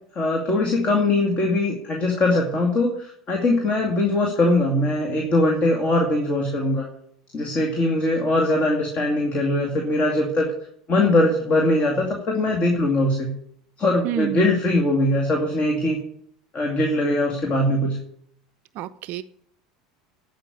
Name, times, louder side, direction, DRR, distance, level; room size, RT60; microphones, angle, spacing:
voice 1, 0.2-6.9 7.3-10.5 10.9-13.3 13.8-16.0 16.5-18.0, left 2 dB, 35° left, 1 dB, 2.2 m, -21 dB
voice 2, 14.0-14.5 18.8-19.2, right 11 dB, 50° right, 11 dB, 0.5 m, -28 dB
11.0 x 5.5 x 8.4 m, 0.68 s
hypercardioid pair, 80°, 3 cm